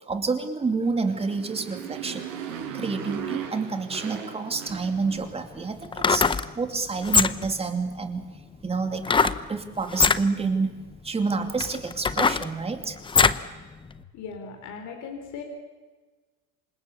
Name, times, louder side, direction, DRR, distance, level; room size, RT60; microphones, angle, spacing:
voice 1, 0.1-2.3 2.7-6.3 6.5-8.2 8.6-10.8 11.0-13.0, right 4 dB, 15° right, 6 dB, 2.7 m, -28 dB
Motorcycle, 1.0-5.6, right 8 dB, 85° right, 6.5 m, -37 dB
sound 1, 4.7-4.8 5.8-6.5 7.0-7.6 9.0-9.4 9.9-10.2 10.9-11.0 11.6-13.5 13.9-14.0, left 5 dB, 15° left, 0.7 m, -22 dB
voice 2, 14.1-15.4, left 6 dB, 50° left, 3 dB, 4.2 m, -38 dB
28.0 x 26.0 x 7.1 m, 1.4 s
cardioid pair, 140°, 38 cm